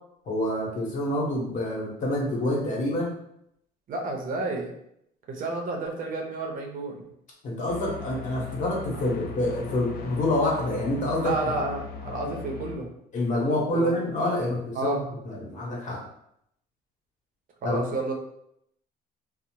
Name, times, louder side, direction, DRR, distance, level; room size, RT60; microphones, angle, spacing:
voice 1, 0.3-3.1 7.4-11.6 12.2-12.3 13.1-16.0 17.6-17.8, left 1 dB, 45° left, -3 dB, 1.0 m, -27 dB
voice 2, 3.9-4.7 5.3-7.0 11.2-12.9 13.4-13.9 14.7-15.0 17.6-18.1, right 2 dB, 55° right, 1 dB, 0.6 m, -30 dB
sound 1, 7.7-12.8, left 5 dB, 65° left, 0.4 m, -39 dB
2.7 x 2.0 x 3.0 m, 0.75 s
cardioid pair, 110°, 17 cm